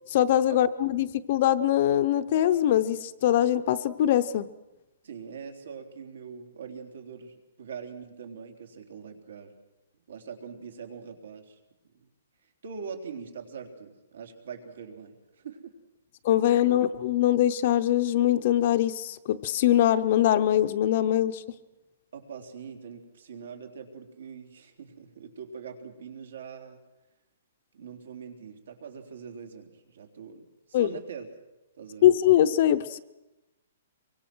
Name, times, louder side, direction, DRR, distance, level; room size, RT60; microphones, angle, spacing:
voice 1, 0.1-4.5 16.2-21.4 30.7-30.9 32.0-33.0, left 12 dB, 35° left, 10 dB, 0.7 m, -22 dB
voice 2, 5.0-9.5 10.1-11.6 11.8-12.1 12.4-15.7 16.7-16.8 22.1-26.8 27.7-31.3 31.8-32.1, right 6 dB, 75° right, 4 dB, 3.6 m, -43 dB
24.0 x 24.0 x 6.2 m, 1.0 s
hypercardioid pair, 175°, 0 cm